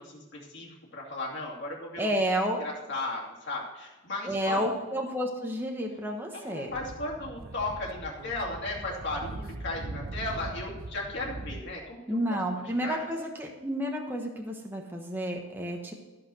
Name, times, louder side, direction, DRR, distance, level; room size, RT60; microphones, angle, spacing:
voice 1, 0.0-2.1 2.6-4.8 6.3-12.0 12.3-13.0, left 2 dB, 50° left, -3 dB, 2.7 m, -36 dB
voice 2, 2.0-2.6 4.3-6.7 12.1-15.9, equal, 10° right, 1 dB, 1.1 m, -30 dB
Speech / Wind, 6.7-11.6, right 2 dB, 40° right, 0.6 m, -40 dB
14.0 x 5.8 x 6.4 m, 1.1 s
head